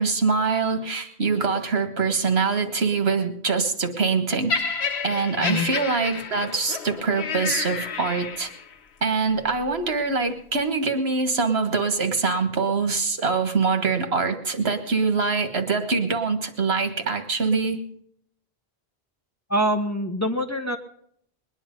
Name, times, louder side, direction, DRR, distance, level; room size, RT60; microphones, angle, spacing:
voice 1, 0.0-4.5 5.0-8.5 9.0-17.8, right 4 dB, 85° right, 7 dB, 1.8 m, -24 dB
Laughter, 4.5-8.7 9.5-9.7, left 5 dB, 90° left, 1.2 m, -30 dB
voice 2, 19.5-20.8, equal, 15° left, 3 dB, 1.2 m, -24 dB
21.5 x 10.0 x 5.3 m, 0.67 s
omnidirectional pair, 1.0 m